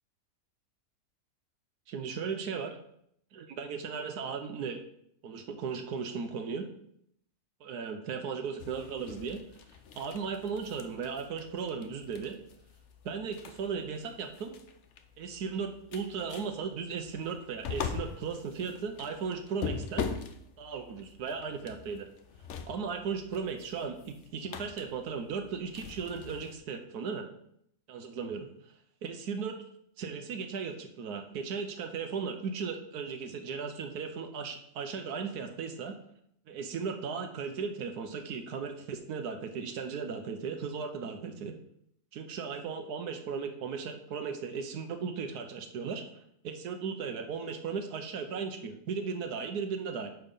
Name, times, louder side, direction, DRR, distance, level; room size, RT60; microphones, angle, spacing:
voice 1, 1.9-2.8 3.3-4.8 5.2-6.7 7.6-9.4 9.9-12.4 13.0-14.6 15.2-20.1 20.6-22.1 22.7-27.3 27.9-28.5 29.0-29.6 30.0-36.0 36.5-41.6 42.1-46.1 46.4-50.1, right 5 dB, 80° right, 6 dB, 1.4 m, -36 dB
sound 1, 8.6-26.6, left 6 dB, 60° left, 0.9 m, -43 dB
9.1 x 4.6 x 5.4 m, 0.72 s
omnidirectional pair, 1.6 m